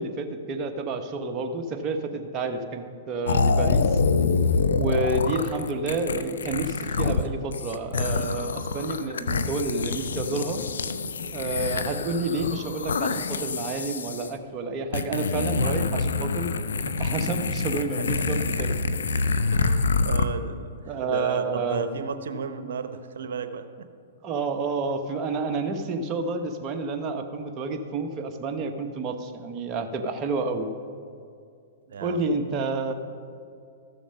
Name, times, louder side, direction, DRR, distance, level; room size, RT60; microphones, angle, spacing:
voice 1, 0.0-4.0 4.7-10.6 11.3-16.5 17.0-18.8 20.9-21.8 24.2-30.7 32.0-32.9, right 3 dB, 30° right, 5 dB, 1.1 m, -29 dB
sound 1, 3.3-7.2 7.5-14.3 14.9-20.3, left 4 dB, 80° left, 0.6 m, -26 dB
voice 2, 15.4-16.3 16.8-16.9 18.0-18.2 18.5-18.6 18.9-19.2 19.5-23.9 31.9-32.4, right 5 dB, 75° right, 10 dB, 0.9 m, -34 dB
13.5 x 7.1 x 5.6 m, 2.4 s
hypercardioid pair, 125°, 0 cm